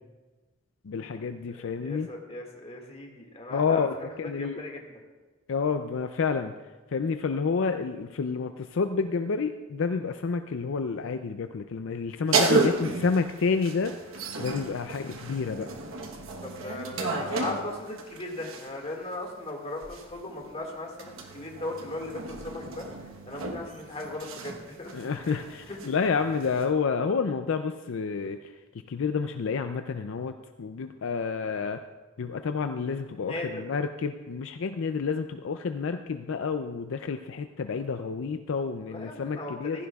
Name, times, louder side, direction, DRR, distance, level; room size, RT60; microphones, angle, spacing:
voice 1, 0.8-2.1 3.5-4.6 5.5-6.5 6.9-14.0 14.4-15.7 24.9-28.4 28.9-30.3 30.6-31.8 32.2-39.8, left 5 dB, 65° left, 8 dB, 0.4 m, -29 dB
voice 2, 1.5-4.9 12.6-12.8 14.6-14.8 16.4-22.9 23.2-24.9 25.2-25.4 25.7-25.9 26.3-26.4 31.4-31.5 33.2-33.6 38.9-39.9, left 2 dB, 30° left, 1 dB, 2.0 m, -38 dB
sound 1, 12.3-18.8 19.8-26.7, right 3 dB, 70° right, 1.1 m, -33 dB
15.5 x 15.0 x 2.4 m, 1.2 s
head